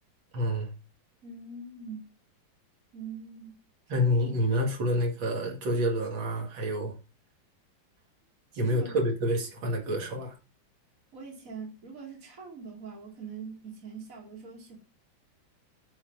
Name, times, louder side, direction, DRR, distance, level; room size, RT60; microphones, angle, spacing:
voice 1, 0.3-0.7 3.9-6.9 8.6-10.3, equal, 75° right, 2.9 m, -28 dB
voice 2, 1.2-2.1 2.9-3.6 3.9-4.5 8.5-9.0 11.1-14.8, right 4 dB, 40° right, 3.0 m, -43 dB
10.0 x 4.8 x 5.8 m
omnidirectional pair, 2.2 m